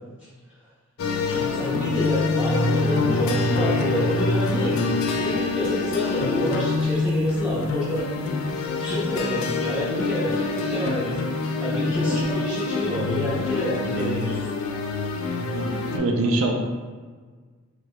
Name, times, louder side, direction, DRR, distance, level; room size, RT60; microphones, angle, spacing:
sound 1, 1.0-16.0, left 3 dB, 75° left, 0.3 m, -25 dB
voice 1, 1.3-8.1 8.8-11.3 11.6-14.5 14.9-15.2, left 1 dB, 5° right, -10 dB, 0.5 m, -29 dB
voice 2, 15.5-16.5, right 2 dB, 85° right, 1 dB, 0.5 m, -24 dB
4.6 x 2.1 x 2.2 m, 1.5 s
head